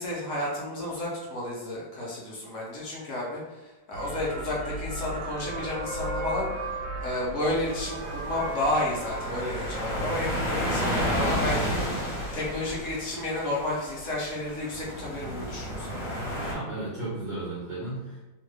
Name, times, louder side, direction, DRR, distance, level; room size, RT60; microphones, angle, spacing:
voice 1, 0.0-16.1, left 1 dB, 60° left, -5 dB, 0.8 m, -32 dB
sound 1, 3.9-12.9, right 1 dB, 80° right, 1.3 m, -36 dB
sound 2, 7.5-16.5, equal, 40° left, 1.3 m, -32 dB
voice 2, 16.4-18.2, right 2 dB, 40° right, -10 dB, 0.9 m, -34 dB
2.9 x 2.4 x 3.2 m, 1.1 s
omnidirectional pair, 2.1 m